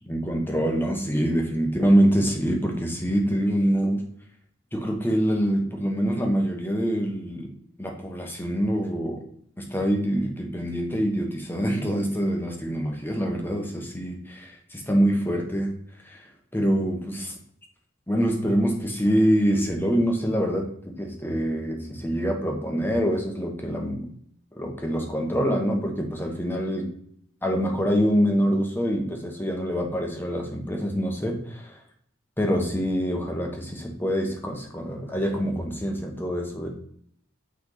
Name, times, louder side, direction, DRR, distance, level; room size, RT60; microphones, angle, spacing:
voice 1, 0.1-4.0 4.7-7.5 7.8-9.2 9.6-15.7 16.0-17.3 18.1-24.1 24.6-26.9 27.4-31.8 32.4-36.7, equal, 10° left, 1 dB, 1.2 m, -25 dB
9.0 x 3.5 x 3.9 m, 0.65 s
head